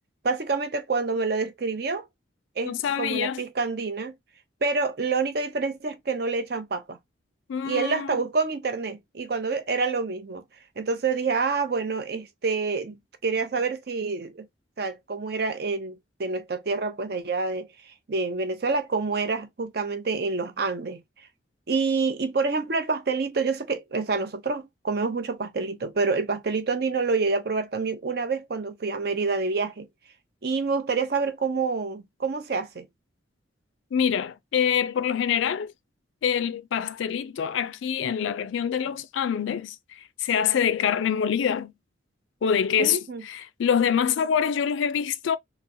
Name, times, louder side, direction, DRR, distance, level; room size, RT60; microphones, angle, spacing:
voice 1, 0.2-2.1 2.6-4.1 4.6-7.0 7.6-10.4 10.8-14.4 14.8-17.7 18.1-21.0 21.7-29.9 30.4-32.8 42.8-43.2, right 4 dB, 55° right, 0.6 m, -27 dB
voice 2, 2.6-3.4 7.5-8.2 33.9-35.7 36.2-41.7 42.4-45.4, left 8 dB, 85° left, 0.4 m, -25 dB
3.8 x 2.0 x 2.6 m
head